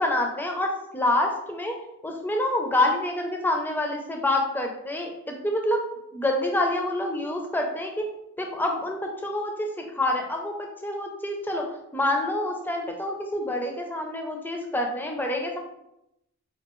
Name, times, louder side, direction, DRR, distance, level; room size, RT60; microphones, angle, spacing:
voice 1, 0.0-1.8 2.0-5.8 6.1-8.1 8.4-9.7 9.9-15.6, left 1 dB, 10° left, 2 dB, 0.5 m, -27 dB
5.2 x 2.4 x 3.0 m, 0.85 s
head